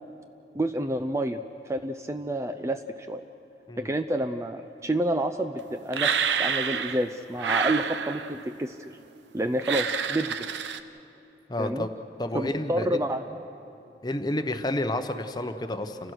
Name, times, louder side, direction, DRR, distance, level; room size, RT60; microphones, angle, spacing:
voice 1, 0.5-1.4 1.6-3.2 3.8-8.9 9.3-10.4 11.6-11.9 12.3-13.4, right 1 dB, 15° right, 8 dB, 0.4 m, -29 dB
sound 1, 5.9-7.1 7.4-8.4 9.6-10.8, right 6 dB, 80° right, 0.8 m, -28 dB
voice 2, 11.5-11.9 12.2-13.0 14.0-16.1, left 1 dB, 20° left, 8 dB, 0.9 m, -30 dB
30.0 x 16.0 x 6.4 m, 2.8 s
head